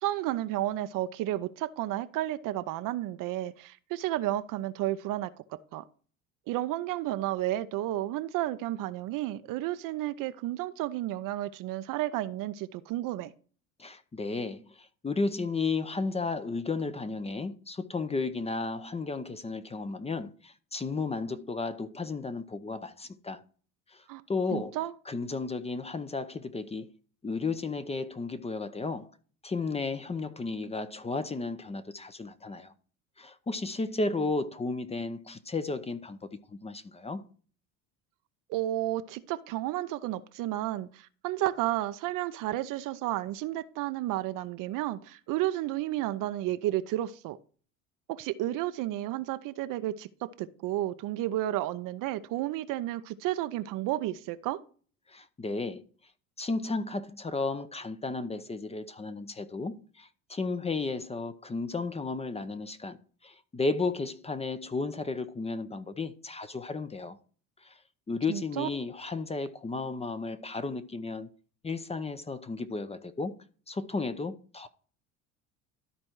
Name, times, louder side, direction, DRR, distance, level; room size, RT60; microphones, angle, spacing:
voice 1, 0.0-5.3 5.7-5.8 6.5-13.3 24.1-24.2 24.5-24.9 38.5-47.4 48.1-50.1 50.4-54.6 68.3-68.7, right 14 dB, 50° right, 0.7 m, -32 dB
voice 2, 13.8-23.4 23.9-24.8 25.1-26.9 27.2-29.1 29.4-32.7 33.2-37.3 55.1-55.8 56.4-67.2 67.6-67.8 68.1-71.3 71.6-73.4 73.7-74.7, left 3 dB, 15° left, 0.7 m, -33 dB
12.5 x 4.3 x 4.6 m
hypercardioid pair, 70°, 41 cm